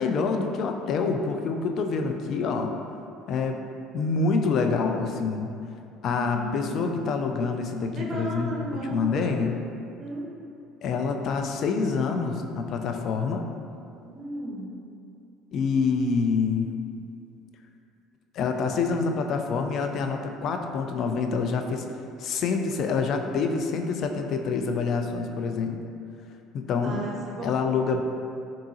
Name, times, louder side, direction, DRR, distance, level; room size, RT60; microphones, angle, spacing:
voice 1, 0.0-2.7 3.3-3.6 3.9-5.5 6.0-9.5 10.8-13.4 15.5-16.7 18.3-21.9 22.2-25.8 26.5-27.0 27.4-28.0, left 4 dB, 55° left, 5 dB, 0.3 m, -26 dB
voice 2, 6.1-7.1 7.9-9.5 10.0-10.3 14.0-14.8 26.8-27.5, right 1 dB, 40° right, -3 dB, 0.9 m, -35 dB
3.7 x 3.6 x 2.8 m, 2.5 s
hypercardioid pair, 70°, 0 cm